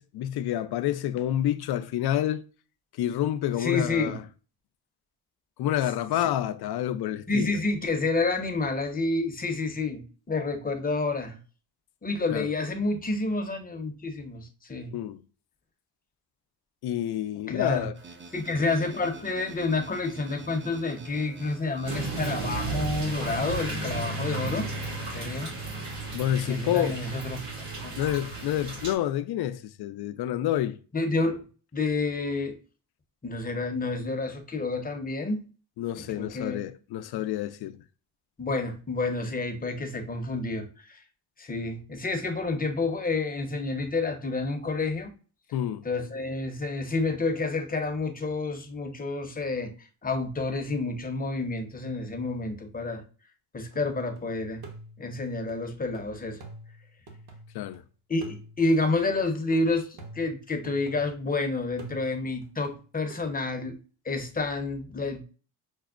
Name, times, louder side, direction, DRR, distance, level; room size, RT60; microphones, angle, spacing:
voice 1, 0.0-2.4 2.9-4.2 5.6-7.6 12.3-12.5 14.9-15.2 16.8-17.9 26.1-27.0 28.0-30.8 35.8-37.8 45.5-45.8 57.5-57.8, left 12 dB, 60° left, 0.5 m, -28 dB
voice 2, 3.6-4.2 7.3-11.4 12.0-14.9 17.5-17.9 18.3-24.7 25.1-25.5 26.5-27.4 27.8-28.0 30.9-31.4 31.7-32.6 33.2-35.5 36.0-36.6 38.4-40.7 41.4-45.1 45.8-49.7 50.0-53.0 53.5-54.6 55.0-56.4 58.1-63.8 64.0-65.2, left 3 dB, 20° left, 0.7 m, -29 dB
sound 1, 17.9-23.2, right 3 dB, 25° right, 0.6 m, -47 dB
sound 2, 21.8-28.9, right 2 dB, 80° right, 1.8 m, -34 dB
sound 3, 53.7-54.2 54.6-57.8 58.2-61.4 61.8-63.2, right 2 dB, 55° right, 1.1 m, -48 dB
6.0 x 2.0 x 2.4 m
cardioid pair, 85°, 45 cm